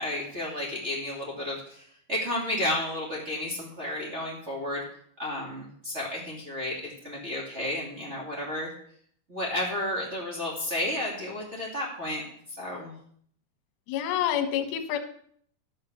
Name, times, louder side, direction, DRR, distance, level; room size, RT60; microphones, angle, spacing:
voice 1, 0.0-1.8 2.1-4.8 5.2-8.7 9.3-12.2 12.5-12.9, left 1 dB, 55° right, -5 dB, 0.7 m, -32 dB
voice 2, 13.9-15.0, left 10 dB, 70° left, 6 dB, 3.0 m, -27 dB
14.0 x 5.7 x 6.7 m, 0.63 s
omnidirectional pair, 5.9 m